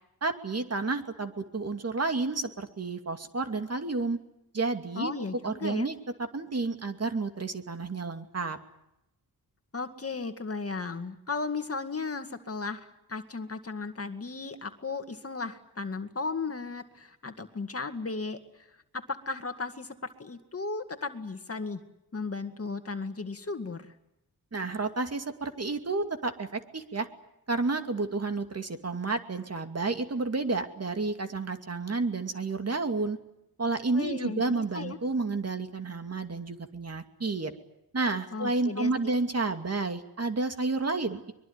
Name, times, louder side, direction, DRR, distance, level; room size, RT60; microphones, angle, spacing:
voice 1, 0.2-4.2 4.5-5.1 5.4-6.0 6.3-8.6 24.5-27.1 27.5-33.2 33.6-37.5 37.9-41.3, right 3 dB, 40° right, 7 dB, 2.6 m, -30 dB
voice 2, 5.0-5.9 9.7-18.4 18.9-21.8 22.1-23.9 33.9-35.0 38.3-39.1, left 4 dB, 35° left, 8 dB, 2.1 m, -35 dB
23.5 x 22.5 x 9.8 m, 0.85 s
cardioid pair, 85°, 39 cm